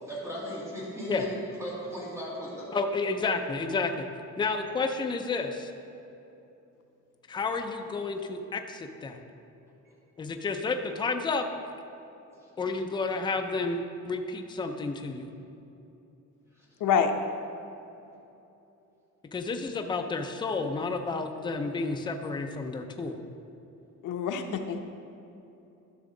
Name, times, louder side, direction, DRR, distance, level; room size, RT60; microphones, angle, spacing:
voice 1, 0.0-2.7 9.9-10.0 16.6-16.7, equal, 10° right, -8 dB, 2.1 m, -37 dB
voice 2, 2.7-4.1 4.4-5.7 7.3-9.2 10.2-11.4 12.6-15.3 19.3-23.2, left 3 dB, 15° left, 5 dB, 0.4 m, -31 dB
voice 3, 16.8-17.1 24.0-24.8, left 7 dB, 75° left, 5 dB, 0.8 m, -26 dB
12.5 x 6.1 x 3.8 m, 2.9 s
cardioid pair, 180°, 31 cm